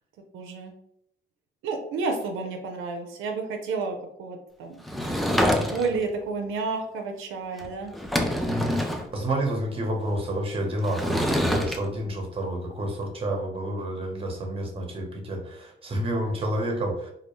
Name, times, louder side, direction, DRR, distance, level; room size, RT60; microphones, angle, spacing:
voice 1, 0.3-0.7 1.6-4.8 5.6-7.9, right 4 dB, 85° right, 3 dB, 0.4 m, -31 dB
Sliding door / Wood, 4.9-6.1 7.6-7.7 7.9-9.1 10.8-11.8, equal, ahead, 0.3 m, -26 dB
voice 2, 8.5-17.1, right 1 dB, 30° right, 2 dB, 0.7 m, -29 dB
2.3 x 2.1 x 3.0 m, 0.74 s
cardioid pair, 90°, 20 cm